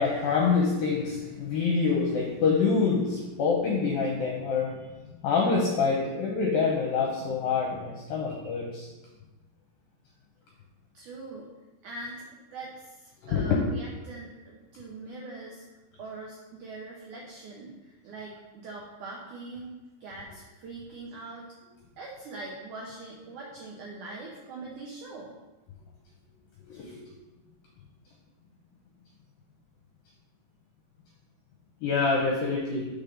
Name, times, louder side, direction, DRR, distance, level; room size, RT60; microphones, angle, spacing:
voice 1, 0.0-4.7 5.2-8.9 13.2-13.4 26.7-27.0 31.8-32.9, left 4 dB, 75° left, -2 dB, 2.2 m, -26 dB
voice 2, 10.9-11.5 11.8-12.3 12.5-15.6 16.0-19.7 20.0-21.5 22.0-25.3, right 3 dB, 90° right, -2 dB, 1.7 m, -42 dB
6.3 x 5.3 x 5.3 m, 1.1 s
omnidirectional pair, 4.9 m